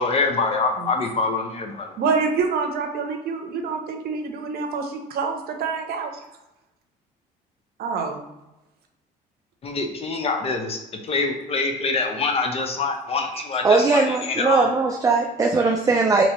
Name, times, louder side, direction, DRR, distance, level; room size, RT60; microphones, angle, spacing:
voice 1, 0.0-2.0 9.6-14.7, left 3 dB, 35° left, 4 dB, 0.6 m, -25 dB
voice 2, 2.0-6.1 7.8-8.2 13.3-13.5, right 5 dB, 65° right, 4 dB, 0.7 m, -26 dB
voice 3, 13.6-16.2, right 3 dB, 20° right, 1 dB, 0.4 m, -19 dB
3.0 x 2.8 x 4.2 m, 0.96 s
cardioid pair, 110°, 17 cm